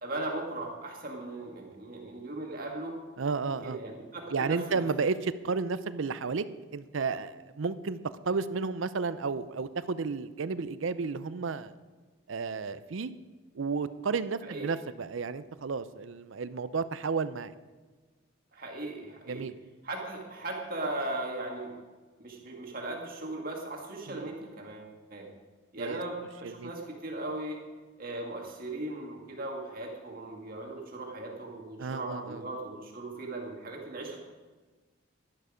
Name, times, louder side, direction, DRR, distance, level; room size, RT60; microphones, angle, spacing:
voice 1, 0.0-2.9 3.6-4.8 14.4-14.7 18.5-19.4 19.8-21.7 22.2-25.3 25.7-27.6 28.0-34.3, right 2 dB, 45° right, 0 dB, 2.1 m, -38 dB
voice 2, 3.2-3.8 4.3-6.4 6.7-8.0 8.2-11.7 12.3-13.1 13.5-17.5 19.3-19.6 24.1-24.3 25.8-26.0 26.6-26.7 31.8-32.4, right 4 dB, 75° right, 14 dB, 0.5 m, -32 dB
12.0 x 11.0 x 5.0 m, 1.4 s
head